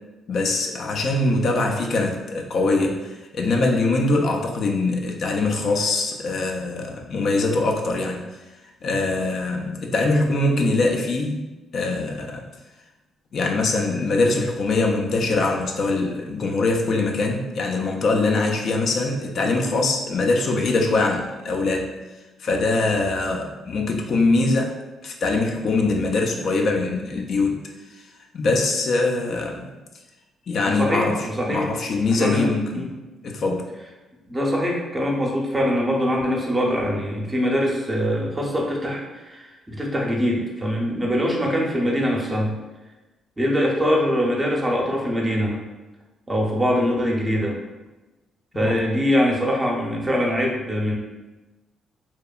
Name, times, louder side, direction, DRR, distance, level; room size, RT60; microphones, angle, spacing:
voice 1, 0.3-8.3 8.8-11.4 11.7-12.4 13.3-21.9 22.4-24.7 25.0-27.6 28.3-29.7 30.5-32.9 33.2-33.7 48.5-48.8, left 3 dB, 60° left, 1 dB, 0.3 m, -22 dB
voice 2, 30.7-31.7 32.1-32.9 34.3-42.6 43.4-45.6 46.3-47.6 48.5-51.0, equal, 15° right, -2 dB, 0.6 m, -23 dB
2.8 x 2.1 x 2.3 m, 1.1 s
cardioid pair, 90°, 0 cm